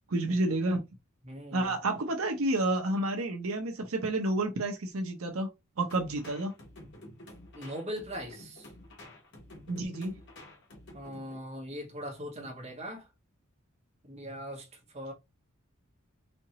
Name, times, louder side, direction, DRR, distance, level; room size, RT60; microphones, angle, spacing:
voice 1, 0.1-0.8 1.5-5.5 5.8-6.5 9.7-10.1, right 2 dB, 75° right, 0.8 m, -30 dB
voice 2, 1.2-1.7 7.5-8.7 10.9-13.1 14.0-15.1, equal, 30° right, 1.3 m, -40 dB
sound 1, 5.9-11.4, left 1 dB, 55° left, 1.5 m, -50 dB
4.3 x 2.9 x 2.9 m
head